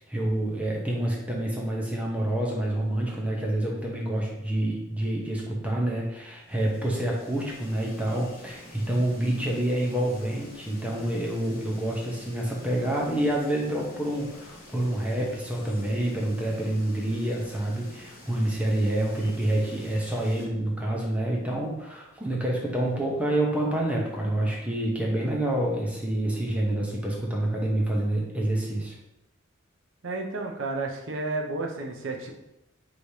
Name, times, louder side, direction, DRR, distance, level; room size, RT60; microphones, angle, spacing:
voice 1, 0.1-29.0, right 1 dB, 5° right, -2 dB, 0.8 m, -27 dB
sound 1, 6.4-20.5, left 1 dB, 45° left, 1.1 m, -48 dB
voice 2, 30.0-32.3, right 3 dB, 70° right, 2 dB, 0.7 m, -31 dB
4.9 x 3.2 x 2.7 m, 0.89 s
head